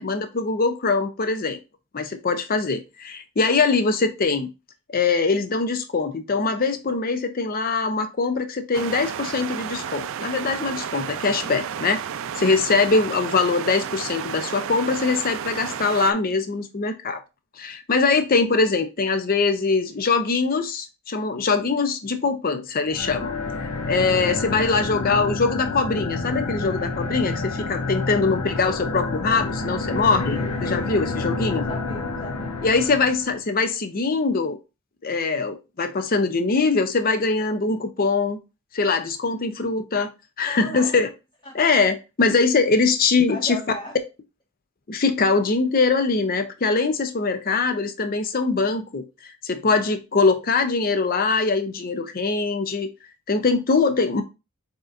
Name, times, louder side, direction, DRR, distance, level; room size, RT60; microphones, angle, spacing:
voice 1, 0.0-1.6 1.9-4.5 4.9-12.0 12.4-17.2 17.6-23.3 23.9-31.6 32.6-34.6 35.0-38.4 38.7-40.1 40.4-41.1 41.5-43.6 44.9-52.9 53.3-54.2, left 4 dB, 40° left, 0.6 m, -22 dB
sound 1, 8.7-16.1, right 8 dB, 60° right, 0.3 m, -32 dB
sound 2, 22.9-33.3, left 3 dB, 85° left, 0.7 m, -29 dB
voice 2, 30.3-31.0 31.6-32.6 40.5-40.9 41.4-41.5 43.3-44.0, left 1 dB, 20° left, 2.2 m, -37 dB
6.5 x 2.9 x 2.5 m
head